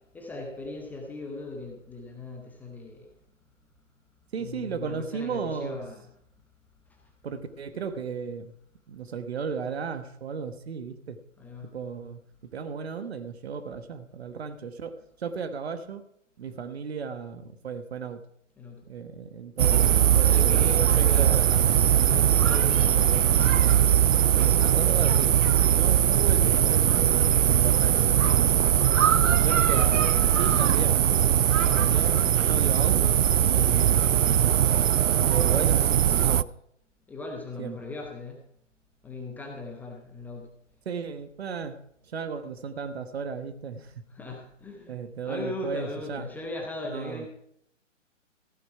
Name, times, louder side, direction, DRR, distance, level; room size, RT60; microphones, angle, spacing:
voice 1, 0.1-3.1 4.4-6.1 11.4-11.7 18.6-18.8 20.1-21.3 22.0-23.5 24.3-24.7 25.6-25.8 29.0-29.8 31.5-32.0 37.1-38.4 39.0-40.5 44.1-45.0 45.2-47.3, left 2 dB, 5° left, 1 dB, 0.8 m, -38 dB
voice 2, 4.3-5.8 7.2-8.5 8.9-11.2 11.7-12.2 12.5-16.1 16.4-18.2 18.9-21.6 24.6-28.6 29.4-31.0 31.8-34.4 35.3-36.0 36.2-36.5 37.6-37.8 40.8-41.8 42.1-43.9 44.9-46.3 46.8-47.3, right 6 dB, 55° right, 11 dB, 1.3 m, -35 dB
sound 1, 19.6-36.4, right 10 dB, 85° right, 0.5 m, -21 dB
15.0 x 9.4 x 4.5 m, 0.69 s
figure-of-eight pair, 140°, 38 cm